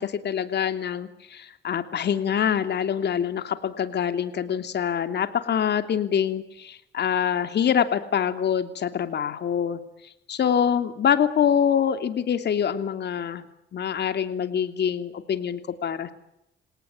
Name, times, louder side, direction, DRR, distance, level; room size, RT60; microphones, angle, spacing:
voice 1, 0.0-9.8 10.3-13.4 13.7-16.1, left 8 dB, 60° left, 9 dB, 2.9 m, -25 dB
28.0 x 18.0 x 9.7 m, 0.84 s
cardioid pair, 90°, 20 cm